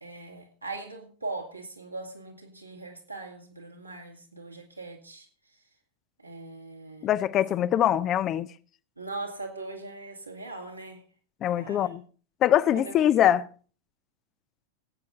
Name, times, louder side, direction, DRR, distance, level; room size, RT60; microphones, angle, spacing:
voice 1, 0.0-5.3 6.2-7.1 7.6-7.8 9.0-11.0 11.5-11.9 12.7-12.9, right 3 dB, 85° right, 2.4 m, -40 dB
voice 2, 7.0-8.5 11.4-12.0 12.4-13.5, left 11 dB, 30° left, 0.6 m, -23 dB
17.5 x 8.5 x 3.9 m
figure-of-eight pair, 90°, 0 cm